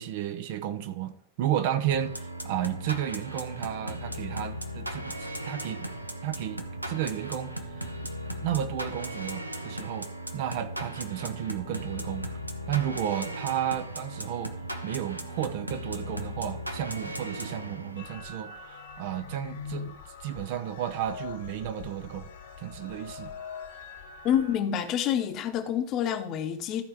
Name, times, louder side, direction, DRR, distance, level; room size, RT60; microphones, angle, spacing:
voice 1, 0.0-5.9 6.2-8.0 8.4-12.3 12.7-14.6 14.8-19.9 20.2-22.3 22.6-23.3, right 11 dB, 50° right, 0.8 m, -33 dB
sound 1, 1.9-18.2, right 1 dB, 85° right, 0.9 m, -37 dB
sound 2, 18.0-24.6, left 6 dB, 60° left, 1.5 m, -43 dB
voice 2, 24.2-26.8, left 9 dB, 35° left, 1.1 m, -27 dB
13.5 x 4.6 x 4.9 m
figure-of-eight pair, 90°, 0 cm